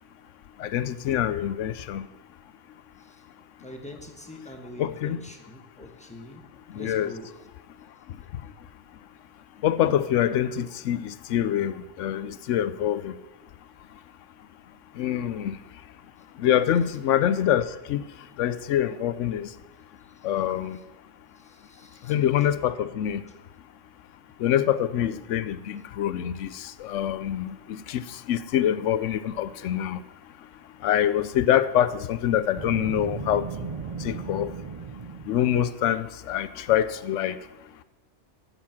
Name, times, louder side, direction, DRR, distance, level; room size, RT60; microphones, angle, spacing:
voice 1, 0.6-2.0 4.8-5.2 6.7-7.1 9.6-13.2 15.0-15.6 16.4-18.0 18.4-19.5 20.2-20.8 22.1-23.2 24.4-30.0 30.8-33.5 34.0-34.5 35.3-37.4, left 10 dB, 85° left, 15 dB, 1.0 m, -25 dB
voice 2, 3.6-6.4 6.7-7.3 21.4-22.1, left 1 dB, 5° left, 4 dB, 1.2 m, -44 dB
Boom, 32.5-35.6, right 5 dB, 50° right, 0.4 m, -36 dB
14.0 x 7.2 x 5.9 m, 1.1 s
omnidirectional pair, 1.2 m